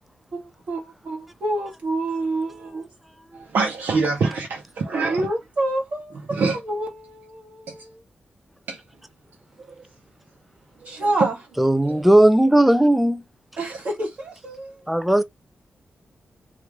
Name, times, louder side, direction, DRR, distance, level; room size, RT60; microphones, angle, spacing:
voice 1, 0.3-2.9 4.9-8.0 10.8-11.3 13.6-14.8, right 2 dB, 55° right, 1.5 m, -28 dB
voice 2, 3.3-5.2 6.3-6.6 7.7-7.8 8.7-8.8 10.8-11.3 11.8-12.0, right 4 dB, 85° right, 0.8 m, -24 dB
voice 3, 11.6-13.2 14.9-15.2, right 1 dB, 5° right, 0.4 m, -16 dB
3.1 x 2.4 x 3.1 m
wide cardioid pair, 130°, 3 cm